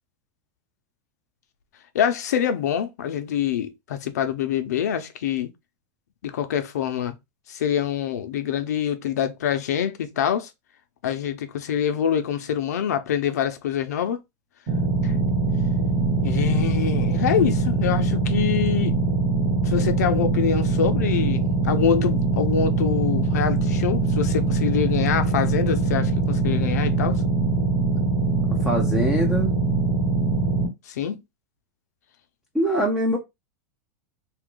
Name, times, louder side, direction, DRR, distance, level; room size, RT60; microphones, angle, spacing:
voice 1, 1.9-5.5 6.2-7.1 7.5-10.5 11.0-14.2 15.0-15.2 16.2-19.0 19.6-27.2 30.9-31.2, left 8 dB, 85° left, 0.7 m, -25 dB
sound 1, 14.7-30.7, right 3 dB, 35° right, 1.1 m, -22 dB
voice 2, 28.6-29.5 32.5-33.2, equal, 5° right, 0.5 m, -23 dB
2.8 x 2.5 x 3.7 m
supercardioid pair, 155°, 9 cm